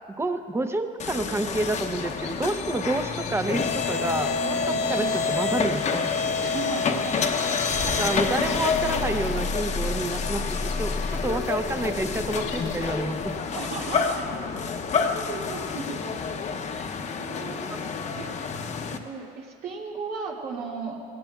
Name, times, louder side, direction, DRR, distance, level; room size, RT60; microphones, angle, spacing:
voice 1, 0.1-6.1 7.8-13.4 17.7-17.8, right 2 dB, 15° right, 8 dB, 0.7 m, -29 dB
sound 1, 1.0-19.0, left 5 dB, 45° left, 0.9 m, -28 dB
sound 2, 1.6-13.0, left 6 dB, 90° left, 1.9 m, -46 dB
voice 2, 4.7-5.1 6.4-7.3 13.5-14.3 15.3-16.0 16.7-16.9 17.2-17.9 18.2-18.7 18.9-21.0, right 4 dB, 65° right, -2 dB, 2.2 m, -36 dB
18.0 x 17.0 x 2.4 m, 2.2 s
cardioid pair, 110°, 17 cm